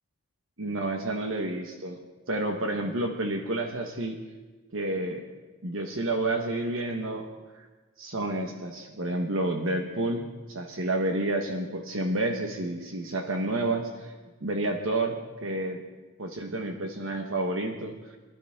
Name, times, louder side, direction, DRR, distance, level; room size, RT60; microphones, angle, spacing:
voice 1, 0.6-2.0 2.3-4.2 4.7-5.3 5.6-7.3 7.5-7.7 8.0-14.1 14.4-15.8 16.2-18.2, right 2 dB, 60° right, 3 dB, 1.3 m, -30 dB
25.0 x 12.0 x 3.7 m, 1.3 s
head